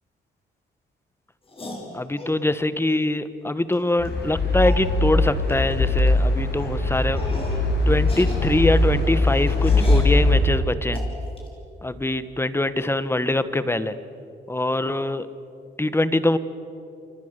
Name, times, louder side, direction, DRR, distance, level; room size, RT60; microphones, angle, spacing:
sound 1, 1.5-2.4 3.7-3.8 4.1-4.2 4.6-4.9 5.5-5.7 6.0-6.2 6.6-6.7 7.2-7.7 8.0-10.1 10.9-11.5, left 1 dB, 30° left, 5.8 m, -36 dB
voice 1, 1.9-7.2 7.9-11.0 11.8-13.9 14.5-15.3 15.8-16.4, left 2 dB, 10° left, 13 dB, 1.2 m, -23 dB
sound 2, 4.0-10.4, left 2 dB, 55° left, 6.8 m, -21 dB
28.5 x 25.5 x 6.7 m, 2.7 s
cardioid pair, 90°, 20 cm